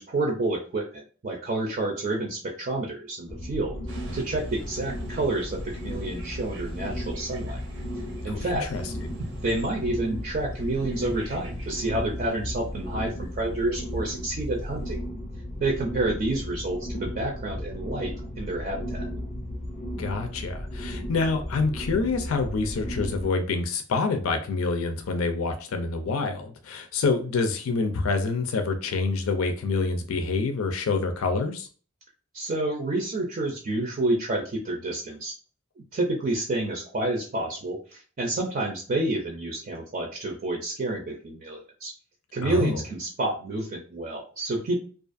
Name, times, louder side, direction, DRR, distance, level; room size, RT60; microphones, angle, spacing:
voice 1, 0.0-3.8 4.1-7.6 8.2-8.7 9.4-15.0 15.6-18.1 18.4-19.1 32.3-35.3 35.9-41.9 42.3-44.8, right 2 dB, 40° right, 0.5 m, -29 dB
sound 1, 3.3-23.3, equal, 35° left, 0.5 m, -35 dB
sound 2, 3.9-15.0, right 2 dB, 85° right, 0.8 m, -47 dB
voice 2, 8.2-8.8 20.0-31.7 42.4-42.8, left 4 dB, 85° left, 0.4 m, -27 dB
2.4 x 2.3 x 2.5 m
head